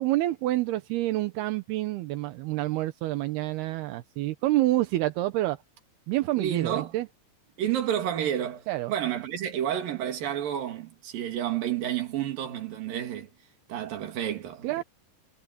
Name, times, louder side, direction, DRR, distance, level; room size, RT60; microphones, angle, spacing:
voice 1, 0.0-5.6 6.1-7.1 8.7-8.9 14.6-14.8, right 16 dB, 85° right, 3.0 m, -28 dB
voice 2, 6.4-6.9 7.6-13.3 13.7-14.8, right 10 dB, 65° right, 3.8 m, -30 dB
omnidirectional pair, 4.5 m